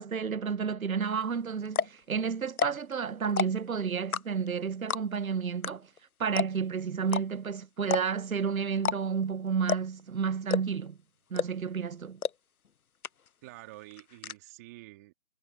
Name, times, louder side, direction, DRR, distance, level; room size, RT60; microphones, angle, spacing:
voice 1, 0.0-5.9 6.2-11.0 11.3-12.2, right 6 dB, 70° right, 0.9 m, -31 dB
sound 1, 1.2-1.3 1.7-2.0 2.5-2.9 3.2-3.7 4.1-4.5 4.9-5.2 5.6-5.7 6.0-6.1 6.4-6.7 7.1-7.2 7.8-8.3 8.8-9.2 9.7-10.0 10.5-10.9 11.4-11.7 12.2-12.3 12.7-12.8 13.0-13.5 13.7-14.3, left 7 dB, 75° left, 0.8 m, -30 dB
voice 2, 13.4-15.1, right 19 dB, 10° right, 2.7 m, -48 dB
figure-of-eight pair, 165°, 43 cm